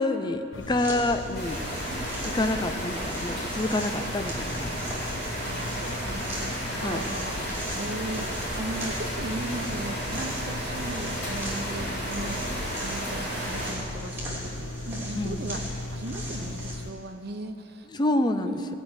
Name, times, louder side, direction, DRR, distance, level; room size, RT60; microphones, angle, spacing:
voice 1, 0.0-1.6 2.3-5.0 6.8-7.0 15.1-15.4 18.0-18.8, left 2 dB, 20° left, 8 dB, 0.6 m, -28 dB
sound 1, 0.5-16.9, left 2 dB, 85° left, 0.6 m, -38 dB
sound 2, 0.6-16.7, right 1 dB, 10° right, 2.8 m, -40 dB
sound 3, 1.3-13.7, equal, 45° left, 4.1 m, -33 dB
voice 2, 5.4-17.9 18.5-18.8, right 2 dB, 55° right, 5 dB, 0.9 m, -37 dB
16.5 x 6.0 x 8.8 m, 2.6 s
head